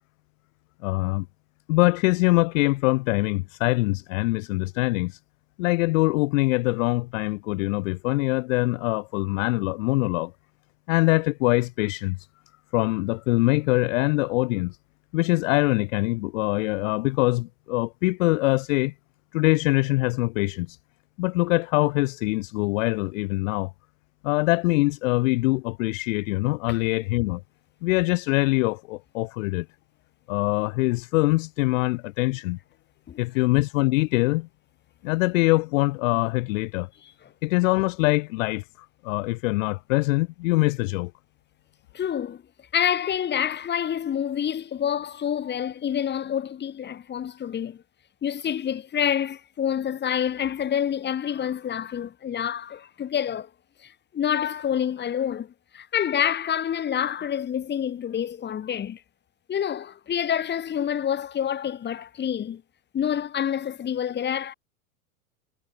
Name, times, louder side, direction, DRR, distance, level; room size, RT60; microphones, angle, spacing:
voice 1, 0.8-1.3 1.7-5.2 5.6-10.3 10.9-12.3 12.7-14.8 15.1-18.9 19.3-20.8 21.2-23.7 24.2-27.4 27.8-29.7 30.3-32.6 33.2-34.5 35.0-36.9 37.4-41.1, left 22 dB, 65° left, 0.7 m, -23 dB
voice 2, 41.9-42.4 42.7-47.8 48.2-53.5 53.8-59.0 59.5-62.6 62.9-64.5, left 9 dB, 25° left, 1.5 m, -27 dB
hypercardioid pair, 105°, 44 cm